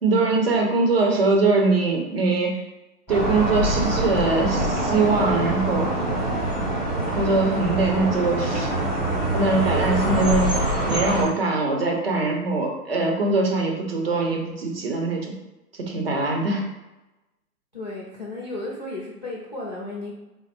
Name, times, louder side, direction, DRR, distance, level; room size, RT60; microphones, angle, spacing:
voice 1, 0.0-2.6 3.1-5.9 7.1-8.7 9.3-15.4 15.8-16.6, right 3 dB, 40° right, 1 dB, 0.7 m, -22 dB
sound 1, 3.1-11.2, right 1 dB, ahead, 0.8 m, -24 dB
voice 2, 17.7-20.1, left 2 dB, 30° left, -6 dB, 0.5 m, -34 dB
4.3 x 2.0 x 4.2 m, 1.0 s
hypercardioid pair, 160°, 48 cm